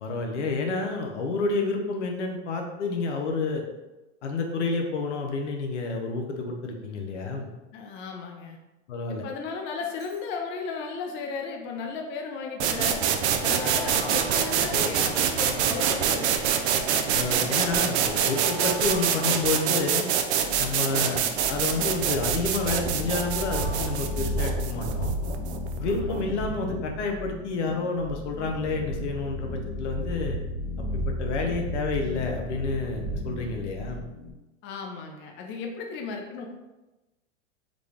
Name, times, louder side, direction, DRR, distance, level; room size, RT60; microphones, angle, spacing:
voice 1, 0.0-3.6 4.2-7.5 8.9-9.2 17.1-20.1 20.6-25.1 25.8-30.4 30.9-34.0, left 3 dB, 85° left, 2 dB, 0.8 m, -29 dB
voice 2, 7.7-8.6 9.1-13.2 13.4-16.4 25.8-26.2 34.6-36.5, left 5 dB, 35° left, 2 dB, 0.6 m, -35 dB
Alarm, 9.8-10.2 11.9-15.7 16.8-20.6 21.7-24.9, right 2 dB, 60° right, 1.5 m, -44 dB
sound 1, 12.6-26.3, right 8 dB, 75° right, 0.5 m, -26 dB
sound 2, 20.4-34.3, equal, 10° right, 0.6 m, -33 dB
3.8 x 2.3 x 3.3 m, 1.0 s
hypercardioid pair, 115°, 34 cm